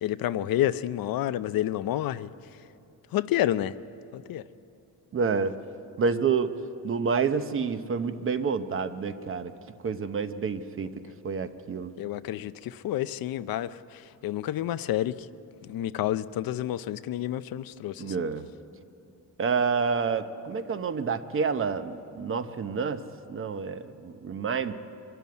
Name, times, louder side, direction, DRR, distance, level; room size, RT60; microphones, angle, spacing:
voice 1, 0.0-2.3 3.1-3.7 4.1-4.4 11.0-11.1 12.0-15.1 15.6-18.2, left 12 dB, 90° left, 14 dB, 0.6 m, -29 dB
voice 2, 5.1-5.5 6.0-6.5 6.8-9.5 9.8-10.9 11.2-11.9 18.0-18.4 19.4-23.0 23.3-24.7, right 5 dB, 40° right, 10 dB, 0.8 m, -28 dB
23.5 x 12.5 x 9.4 m, 2.7 s
wide cardioid pair, 160°, 34 cm